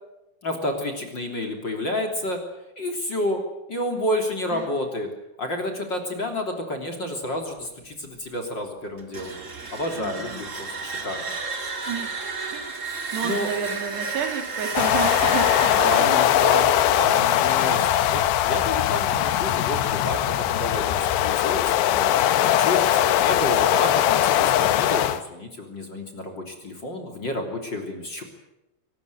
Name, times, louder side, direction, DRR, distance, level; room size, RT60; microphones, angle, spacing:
voice 1, 0.4-2.4 2.8-3.4 3.7-5.1 5.4-9.4 9.7-11.3 13.2-13.5 15.8-22.1 22.4-28.2, left 1 dB, 30° left, 3 dB, 3.4 m, -30 dB
sound 1, 9.0-17.8, right 4 dB, 25° right, 2.0 m, -33 dB
voice 2, 10.0-10.4 11.9-12.3 12.5-12.8 13.1-16.2, right 7 dB, 80° right, 5 dB, 4.8 m, -31 dB
Icy wind, 14.8-25.2, left 12 dB, 85° left, 3.2 m, -21 dB
24.0 x 19.5 x 9.3 m, 0.93 s
omnidirectional pair, 4.8 m